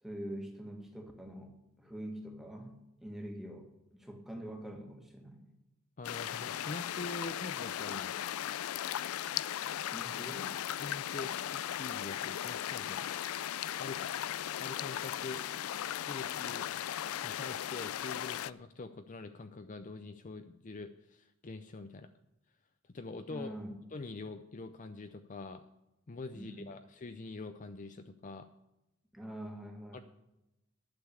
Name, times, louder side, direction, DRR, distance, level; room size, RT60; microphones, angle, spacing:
voice 1, 0.0-5.5 9.8-10.5 23.3-23.8 26.3-26.7 29.1-30.0, right 1 dB, ahead, 2 dB, 1.7 m, -45 dB
sound 1, 6.0-18.5, left 11 dB, 90° left, 0.4 m, -37 dB
voice 2, 6.0-8.1 10.7-13.1 13.8-14.1 14.6-15.4 15.9-16.7 17.2-22.1 22.9-23.5 23.9-25.6 26.1-28.5 29.9-30.0, left 3 dB, 35° left, 8 dB, 0.5 m, -44 dB
11.5 x 6.8 x 8.2 m, 0.93 s
head